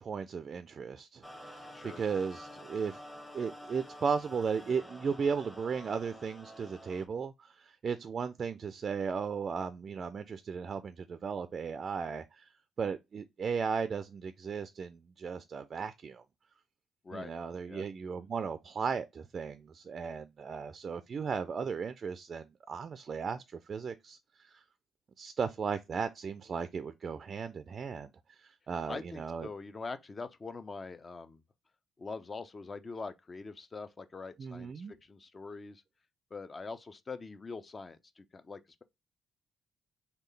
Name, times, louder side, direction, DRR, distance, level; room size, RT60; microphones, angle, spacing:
voice 1, 0.0-1.2 1.5-3.0 3.3-12.5 12.8-16.2 17.1-24.2 24.5-24.6 25.2-28.1 28.4-29.5 34.4-34.9, right 6 dB, 45° right, 0.3 m, -36 dB
sound 1, 1.2-7.1, equal, 10° left, 0.9 m, -49 dB
voice 2, 28.9-31.4 32.0-35.8 36.3-38.8, left 4 dB, 30° left, 0.5 m, -43 dB
3.7 x 2.3 x 3.2 m
cardioid pair, 90°, 0 cm